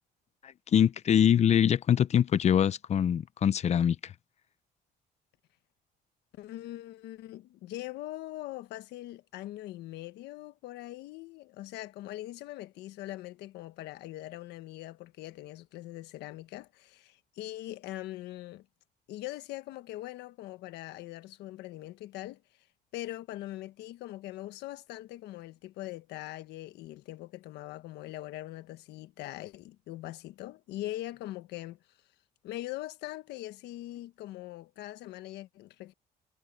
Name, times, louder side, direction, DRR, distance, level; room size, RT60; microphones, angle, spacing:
voice 1, 0.4-4.1, left 9 dB, 40° left, 0.6 m, -24 dB
voice 2, 6.3-18.6 19.1-22.4 22.9-31.8 32.4-35.9, left 15 dB, 85° left, 1.4 m, -42 dB
cardioid pair, 110°, 17 cm